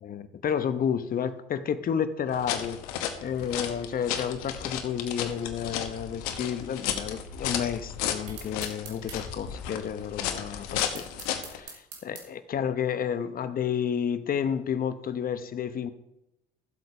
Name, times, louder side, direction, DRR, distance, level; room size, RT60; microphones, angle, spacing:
voice 1, 0.0-2.8 3.2-11.1 11.5-15.9, left 8 dB, 50° left, 1.0 m, -31 dB
sound 1, 2.3-11.6, left 9 dB, 85° left, 1.1 m, -34 dB
sound 2, 8.3-9.2 10.8-12.3, right 5 dB, 85° right, 2.6 m, -43 dB
13.0 x 7.9 x 5.1 m
hypercardioid pair, 60°, 19 cm